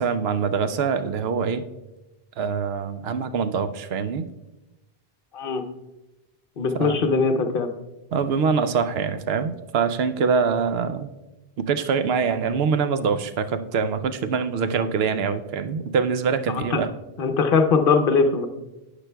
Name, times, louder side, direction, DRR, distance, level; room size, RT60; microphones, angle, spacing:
voice 1, 0.0-1.6 2.4-4.3 6.7-7.0 8.1-11.1 11.6-16.9, right 5 dB, 70° right, 10 dB, 0.8 m, -24 dB
voice 2, 6.6-7.7 16.5-16.8 17.2-18.5, left 4 dB, 60° left, 7 dB, 0.8 m, -21 dB
12.0 x 8.1 x 2.3 m, 1.0 s
omnidirectional pair, 1.1 m